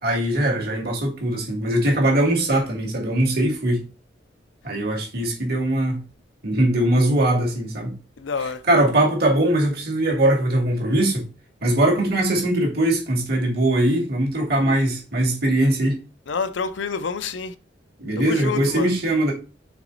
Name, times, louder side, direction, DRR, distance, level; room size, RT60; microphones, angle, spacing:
voice 1, 0.0-3.8 4.6-6.0 6.4-7.9 8.7-11.3 11.6-16.0 18.0-19.3, right 1 dB, 55° right, 2.3 m, -21 dB
voice 2, 8.2-8.6 16.3-17.5 18.2-18.9, left 5 dB, 75° left, 0.6 m, -28 dB
5.9 x 4.1 x 3.9 m
head